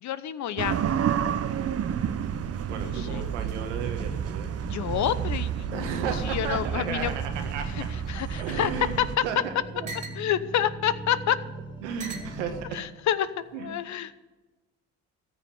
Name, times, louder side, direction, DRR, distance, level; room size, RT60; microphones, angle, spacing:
voice 1, 0.0-0.8 2.9-3.2 4.6-5.9 6.2-7.2 7.8-8.7 9.0-9.1 10.2-11.4 12.7-13.3 13.6-14.1, left 10 dB, 55° left, 15 dB, 1.0 m, -28 dB
sound 1, 0.6-9.2, right 8 dB, 45° right, 1.0 m, -30 dB
sound 2, 1.3-5.8 6.1-7.4 8.0-10.2 11.1-11.2 12.0-12.4 13.2-13.6, right 2 dB, 20° right, 2.8 m, -46 dB
sound 3, 1.9-12.6, right 2 dB, 15° left, 2.4 m, -44 dB
voice 2, 2.7-4.9 5.7-7.9 8.3-9.0 9.2-9.5 9.8-9.9 11.8-12.8 13.5-13.8, right 7 dB, 90° right, 5 dB, 1.7 m, -34 dB
14.5 x 6.5 x 9.3 m, 1.2 s
hypercardioid pair, 65°, 34 cm